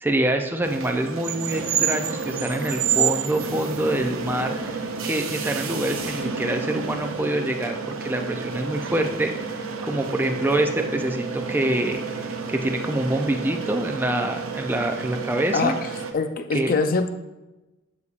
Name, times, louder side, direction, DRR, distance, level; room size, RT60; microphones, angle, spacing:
voice 1, 0.0-12.0 12.5-15.7 16.5-16.8, right 1 dB, 10° right, 5 dB, 0.4 m, -26 dB
sound 1, 0.6-16.1, right 6 dB, 85° right, 0.7 m, -30 dB
voice 2, 16.1-17.1, left 4 dB, 45° left, 8 dB, 0.5 m, -23 dB
8.0 x 7.0 x 2.4 m, 1.0 s
head